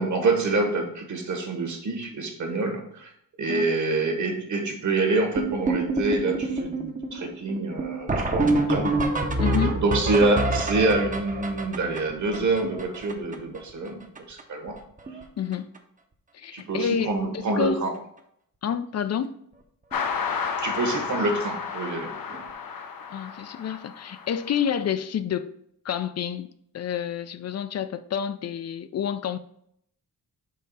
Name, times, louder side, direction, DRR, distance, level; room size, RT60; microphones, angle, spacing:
voice 1, 0.0-3.1 3.4-8.9 9.8-14.0 14.3-14.8 16.5-17.9 20.6-22.4, right 2 dB, 55° right, 1.4 m, -26 dB
sound 1, 5.4-13.6 13.9-14.0 14.2-14.4 14.7-15.2 15.5-15.8 16.6-16.7 17.1-17.2 17.5-17.6 19.9-20.0 22.3-22.4, right 2 dB, 25° right, 0.7 m, -27 dB
voice 2, 9.4-9.8 15.4-15.7 16.3-17.9 18.6-19.4 23.1-25.5 25.8-29.4, left 8 dB, 45° left, 0.4 m, -29 dB
sound 2, 19.9-24.7, left 6 dB, 75° left, 0.8 m, -32 dB
5.6 x 3.7 x 5.4 m
wide cardioid pair, 155°, 35 cm